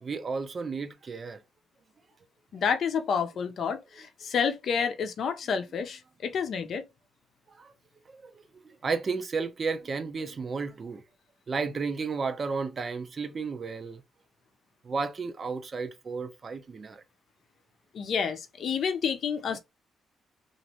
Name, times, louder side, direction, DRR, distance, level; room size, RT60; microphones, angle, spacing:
voice 1, 0.0-1.4 7.5-7.7 8.1-11.0 11.5-14.0 14.8-17.0, right 4 dB, 40° right, 0.6 m, -33 dB
voice 2, 2.5-6.8 17.9-19.6, left 6 dB, 60° left, 0.6 m, -29 dB
3.0 x 2.5 x 2.9 m
cardioid pair, 90°, 0 cm